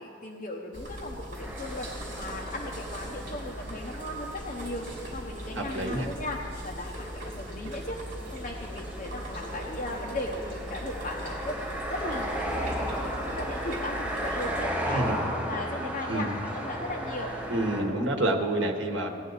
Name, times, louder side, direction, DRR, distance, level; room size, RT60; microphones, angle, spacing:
voice 1, 0.0-4.9 5.1-8.0 8.3-11.5 11.9-15.0 15.5-17.3, left 1 dB, 40° left, -2 dB, 0.8 m, -37 dB
sound 1, 0.7-14.7, equal, 40° right, 2.9 m, -40 dB
sound 2, 1.4-17.8, equal, 5° right, 4.0 m, -36 dB
voice 2, 5.6-6.1 14.9-15.2 16.1-16.4 17.5-19.1, right 1 dB, 70° right, 3 dB, 1.3 m, -28 dB
17.5 x 10.0 x 4.0 m, 2.1 s
head